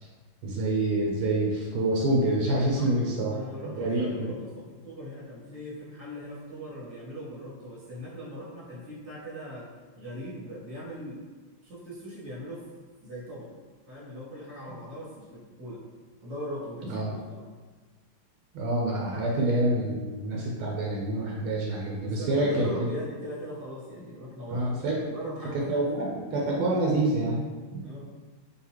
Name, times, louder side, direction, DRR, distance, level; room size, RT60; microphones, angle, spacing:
voice 1, 0.4-3.3 3.8-4.3 16.9-17.1 18.5-22.9 24.5-25.0 25.7-27.8, right 1 dB, 85° right, -2 dB, 1.5 m, -27 dB
voice 2, 2.8-9.7 9.9-11.2 11.6-12.6 13.0-13.5 13.9-15.8 16.2-17.4 22.0-25.9 27.8-28.1, equal, 25° right, -8 dB, 1.2 m, -40 dB
4.0 x 3.2 x 2.9 m, 1.4 s
omnidirectional pair, 2.3 m